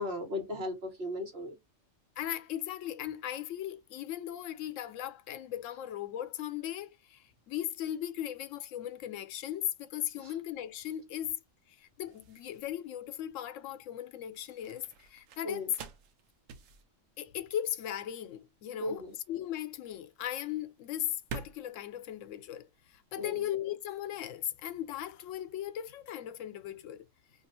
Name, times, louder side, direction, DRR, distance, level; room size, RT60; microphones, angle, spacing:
voice 1, 0.0-1.6 10.2-10.3 15.4-15.7 18.8-19.1 23.2-23.4, left 2 dB, 55° right, 1.4 m, -36 dB
voice 2, 2.2-11.4 11.8-15.7 17.2-22.7 23.1-27.1, left 11 dB, 80° left, 0.9 m, -38 dB
sound 1, 9.4-23.2, right 6 dB, 85° right, 0.9 m, -50 dB
2.7 x 2.4 x 4.1 m
omnidirectional pair, 1.3 m